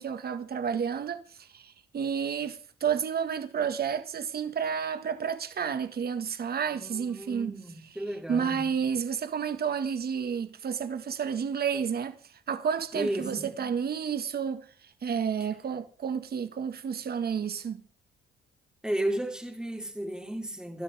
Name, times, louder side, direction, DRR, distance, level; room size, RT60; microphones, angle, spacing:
voice 1, 0.0-7.6 8.3-12.2 12.5-14.7 15.0-17.8, right 7 dB, 50° right, 2.0 m, -31 dB
voice 2, 6.7-8.7 12.9-13.5 15.4-15.5 18.8-20.8, right 1 dB, 5° right, 4.2 m, -34 dB
29.0 x 13.0 x 3.7 m
cardioid pair, 90°, 20 cm